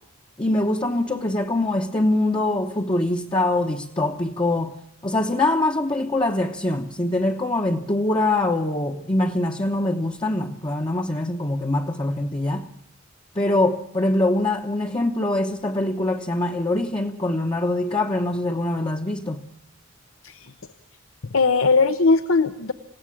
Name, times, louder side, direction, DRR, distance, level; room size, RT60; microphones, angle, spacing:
voice 1, 0.4-4.8 5.0-12.7 13.3-19.4, left 2 dB, 25° left, 1.0 m, -23 dB
voice 2, 21.2-22.7, left 4 dB, 80° left, 1.0 m, -19 dB
28.0 x 16.5 x 8.6 m
head